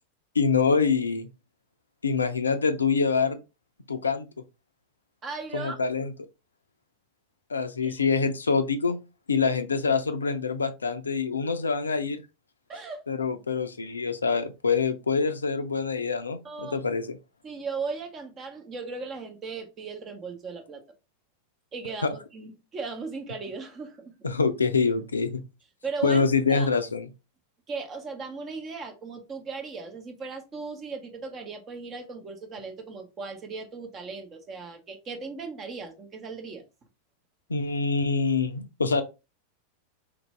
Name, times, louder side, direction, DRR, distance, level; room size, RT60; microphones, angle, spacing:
voice 1, 0.4-1.3 2.0-3.4 3.9-4.3 5.5-6.1 7.5-9.0 9.3-12.2 13.1-17.2 24.2-25.4 26.0-27.1 37.5-39.0, left 5 dB, 75° left, 0.4 m, -25 dB
voice 2, 5.2-5.8 7.8-8.0 9.4-9.5 12.7-13.0 16.4-16.8 17.4-20.8 21.7-24.1 25.8-26.2 26.5-26.7 27.7-36.6, right 4 dB, 25° right, 0.9 m, -37 dB
3.1 x 2.5 x 3.2 m
figure-of-eight pair, 90°, 0 cm